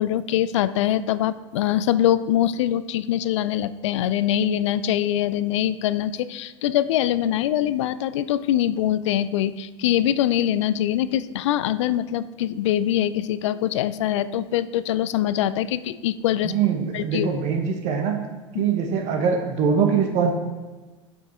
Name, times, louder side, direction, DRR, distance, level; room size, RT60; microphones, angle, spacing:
voice 1, 0.0-16.5 16.9-17.3 18.5-18.6, left 11 dB, 70° left, 15 dB, 0.4 m, -23 dB
voice 2, 16.4-18.2 18.6-20.3, right 6 dB, 45° right, 4 dB, 1.1 m, -22 dB
8.2 x 4.5 x 4.3 m, 1.2 s
hypercardioid pair, 90°, 16 cm